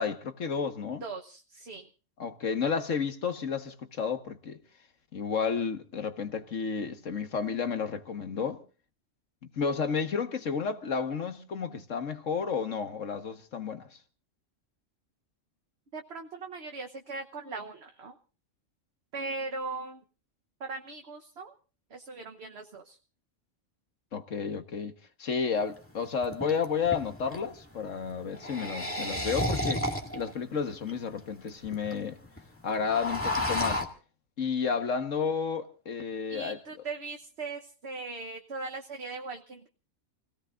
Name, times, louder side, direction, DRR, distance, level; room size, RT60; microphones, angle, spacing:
voice 1, 0.0-1.0 2.2-4.6 5.1-8.6 9.4-13.9 24.1-24.9 25.2-29.9 30.1-32.2 32.6-33.8 34.4-36.6, left 6 dB, 75° left, 1.8 m, -31 dB
voice 2, 1.0-1.9 15.9-18.2 19.1-20.0 20.6-21.5 21.9-23.0 36.3-39.7, right 3 dB, 55° right, 1.3 m, -39 dB
sound 1, 25.6-25.7 26.2-27.4 28.3-30.3 30.9-31.0 31.2-31.3 31.5-31.9 32.2-32.4 32.7-33.9, left 1 dB, 10° left, 2.0 m, -31 dB
29.0 x 18.0 x 2.6 m
omnidirectional pair, 1.3 m